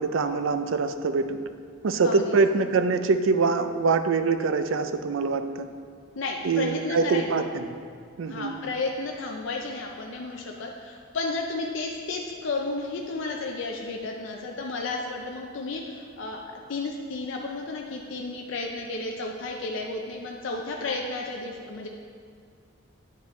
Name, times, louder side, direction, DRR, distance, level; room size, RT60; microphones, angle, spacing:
voice 1, 0.0-1.4 1.8-5.7 6.4-7.7 8.2-8.5, right 4 dB, 70° right, 9 dB, 0.4 m, -24 dB
voice 2, 2.0-2.4 6.2-7.3 8.3-21.9, left 3 dB, 65° left, 0 dB, 0.5 m, -32 dB
9.1 x 5.2 x 3.1 m, 2.2 s
head